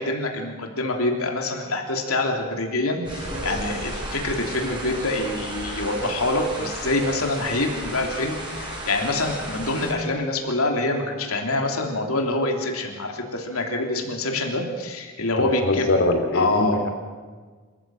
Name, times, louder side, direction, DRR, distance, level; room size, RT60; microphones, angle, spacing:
voice 1, 0.0-15.9 16.3-16.9, left 2 dB, 80° left, 2 dB, 3.2 m, -25 dB
sound 1, 3.1-9.9, right 1 dB, 20° right, 6.2 m, -34 dB
voice 2, 15.6-16.9, left 2 dB, 60° left, 6 dB, 3.1 m, -22 dB
27.0 x 14.0 x 7.7 m, 1.5 s
head